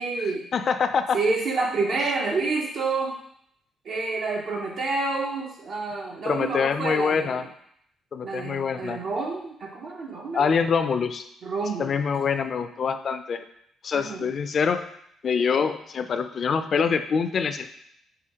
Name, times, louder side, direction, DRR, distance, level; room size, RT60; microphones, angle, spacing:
voice 1, 0.0-0.5 1.1-3.2 3.8-7.5 8.2-10.5 11.4-11.9 13.9-14.3, right 3 dB, 65° right, -2 dB, 0.6 m, -28 dB
voice 2, 0.5-1.2 6.2-7.4 8.1-9.0 10.3-11.3 11.8-13.4 13.8-14.9 15.2-17.7, left 6 dB, 50° left, 9 dB, 0.3 m, -25 dB
4.9 x 3.4 x 2.8 m, 0.71 s
cardioid pair, 90°, 0 cm